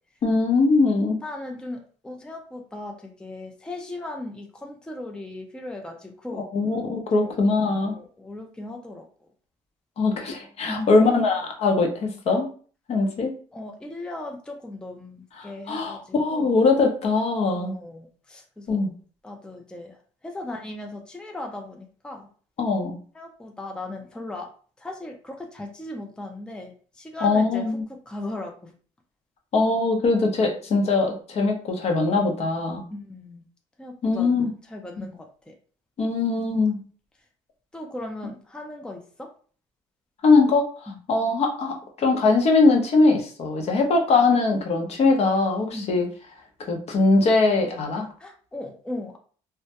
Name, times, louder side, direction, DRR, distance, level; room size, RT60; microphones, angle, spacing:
voice 1, 0.2-1.2 6.3-8.0 10.0-12.5 12.9-13.3 15.4-17.7 18.7-18.9 22.6-23.0 27.2-27.8 29.5-32.8 34.0-34.5 35.0-35.1 36.0-36.8 40.2-40.7 41.1-46.1 46.7-48.1, left 3 dB, 50° left, 2 dB, 0.7 m, -21 dB
voice 2, 1.2-6.5 7.1-7.4 7.8-9.3 10.6-11.0 13.5-16.5 17.5-18.9 19.2-22.3 23.1-24.5 24.8-28.7 32.9-33.5 33.8-35.5 37.7-39.3 40.9-41.0 45.7-45.9 48.2-49.2, left 2 dB, 5° left, 2 dB, 0.4 m, -37 dB
2.2 x 2.1 x 2.8 m, 0.42 s
supercardioid pair, 80°, 13 cm